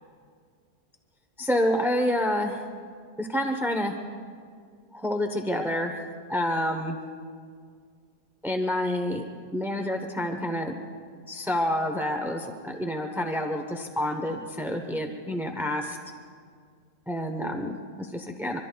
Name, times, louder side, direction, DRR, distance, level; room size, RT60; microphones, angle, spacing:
voice 1, 1.4-2.6 3.2-3.9 4.9-6.0 6.3-7.0 8.4-9.2 9.5-10.8 11.3-16.0 17.1-18.6, left 1 dB, 5° right, 4 dB, 0.4 m, -28 dB
25.5 x 24.5 x 2.3 m, 2.1 s
omnidirectional pair, 1.7 m